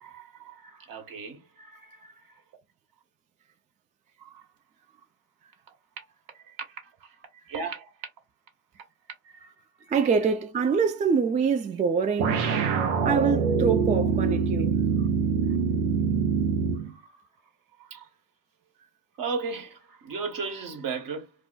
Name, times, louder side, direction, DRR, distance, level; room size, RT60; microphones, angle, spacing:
voice 1, 0.0-2.4 4.2-4.5 5.7-6.0 6.3-7.9 8.7-8.8 9.2-9.5 9.8-9.9 15.0-15.1 16.8-17.2 17.8-18.1 19.2-21.3, right 5 dB, 55° right, 1.4 m, -37 dB
voice 2, 9.9-12.5 13.0-14.8, right 5 dB, 20° right, 0.3 m, -25 dB
sound 1, 12.2-16.9, right 5 dB, 85° right, 0.9 m, -24 dB
2.4 x 2.2 x 3.9 m
hypercardioid pair, 75°, 41 cm